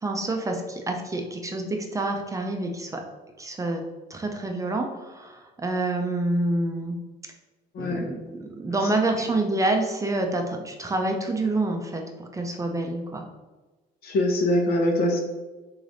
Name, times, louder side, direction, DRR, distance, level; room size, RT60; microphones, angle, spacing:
voice 1, 0.0-3.0 3.4-3.8 4.1-7.0 7.8-13.3, right 2 dB, 20° right, 3 dB, 0.6 m, -27 dB
voice 2, 7.7-8.1 14.0-15.2, left 1 dB, 65° left, 2 dB, 1.0 m, -23 dB
3.8 x 3.3 x 3.9 m, 1.2 s
cardioid pair, 110°, 17 cm